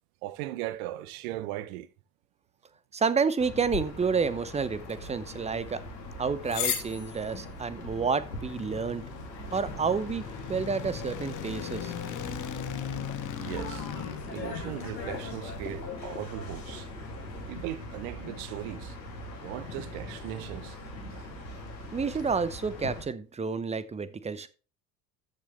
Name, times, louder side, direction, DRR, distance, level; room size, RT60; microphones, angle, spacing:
voice 1, 0.2-1.9 13.4-13.9 14.3-16.9 17.2-19.0 19.4-20.8 21.1-21.3, right 15 dB, 55° right, 0.8 m, -38 dB
voice 2, 2.9-5.8 6.2-9.0 9.5-10.2 10.5-11.9 21.9-24.5, right 5 dB, 15° right, 0.8 m, -29 dB
sound 1, 3.4-23.0, left 1 dB, 85° left, 2.6 m, -41 dB
sound 2, 3.7-10.2, left 9 dB, 60° left, 3.1 m, -40 dB
sound 3, 7.9-16.2, left 10 dB, 40° left, 1.3 m, -40 dB
13.5 x 6.2 x 3.2 m
figure-of-eight pair, 65°, 50 cm